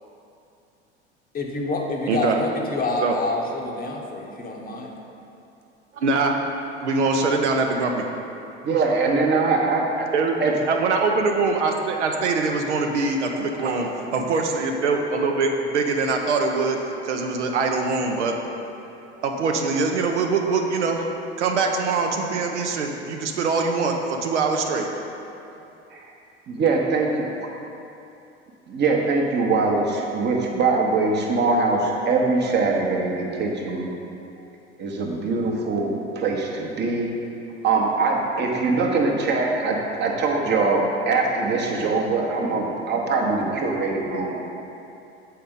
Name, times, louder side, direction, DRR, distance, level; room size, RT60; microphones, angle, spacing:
voice 1, 1.3-5.0, left 2 dB, 25° left, 0 dB, 0.8 m, -27 dB
voice 2, 5.9-6.4 6.8-8.0 10.1-10.4 10.7-18.3 19.2-21.1 21.4-24.9, right 4 dB, 75° right, 3 dB, 0.7 m, -23 dB
voice 3, 8.6-10.1 10.4-10.5 13.6-14.1 25.9-26.1 26.5-27.3 28.7-33.9 34.4-34.5 34.8-37.1 37.6-44.4, right 3 dB, 30° right, 0 dB, 0.9 m, -23 dB
7.6 x 4.3 x 3.7 m, 2.8 s
figure-of-eight pair, 80°, 35 cm